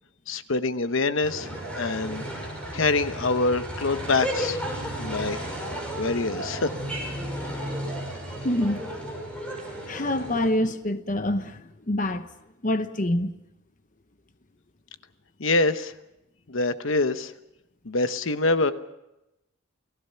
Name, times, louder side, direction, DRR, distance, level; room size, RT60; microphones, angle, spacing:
voice 1, 0.3-1.5 1.7-2.5 2.7-4.6 5.0-5.4 6.0-6.7 15.4-15.9 16.5-17.3 17.8-18.7, left 3 dB, 70° left, 1.0 m, -25 dB
sound 1, 1.2-10.5, equal, 5° left, 6.3 m, -33 dB
voice 2, 8.4-9.0 9.9-12.3 12.6-13.3, left 1 dB, 40° left, 1.0 m, -26 dB
29.0 x 19.0 x 5.7 m
head